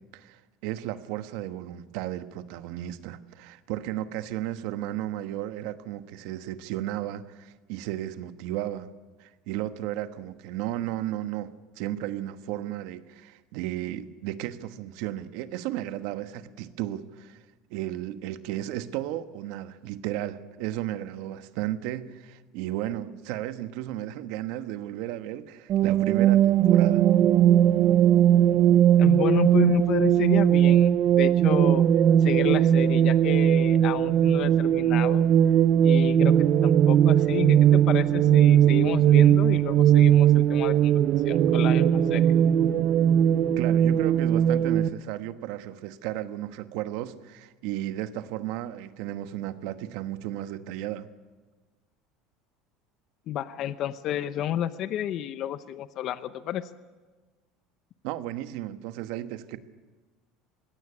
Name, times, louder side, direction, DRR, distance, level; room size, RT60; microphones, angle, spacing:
voice 1, 0.1-8.9 9.2-17.4 17.7-27.0 43.6-51.1 58.0-59.6, right 13 dB, 70° right, 11 dB, 1.2 m, -34 dB
sound 1, 25.7-44.9, right 10 dB, 45° right, 0.6 m, -19 dB
voice 2, 29.0-31.8 32.2-35.3 35.8-36.3 36.6-40.9 41.2-42.4 53.3-56.7, left 11 dB, 50° left, 13 dB, 0.8 m, -30 dB
21.0 x 17.0 x 9.8 m, 1.3 s
cardioid pair, 140°, 0 cm